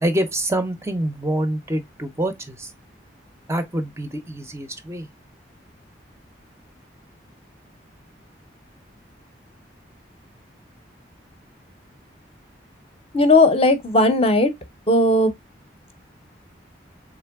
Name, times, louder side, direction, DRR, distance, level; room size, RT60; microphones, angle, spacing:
voice 1, 0.0-2.7 3.5-5.1, right 1 dB, 15° right, 0.5 m, -26 dB
voice 2, 13.1-14.5 14.9-15.3, left 2 dB, 30° left, 0.6 m, -16 dB
3.7 x 3.3 x 3.3 m
head